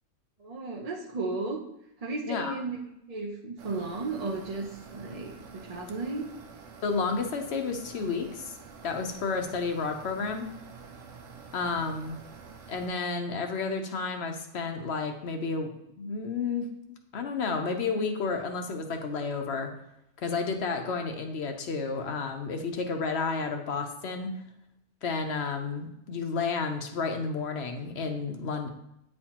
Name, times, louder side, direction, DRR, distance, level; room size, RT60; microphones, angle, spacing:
voice 1, 0.4-1.6 2.0-2.8 3.1-6.3, right 3 dB, 45° right, 0 dB, 0.5 m, -34 dB
voice 2, 2.3-2.6 6.8-8.6 8.8-10.5 11.5-12.2 12.7-16.7 17.1-19.7 20.2-24.4 25.0-28.7, left 4 dB, 60° left, 4 dB, 0.9 m, -31 dB
sound 1, 3.6-12.9, right 5 dB, 70° right, 0.9 m, -48 dB
8.7 x 4.3 x 2.9 m, 0.82 s
omnidirectional pair, 1.4 m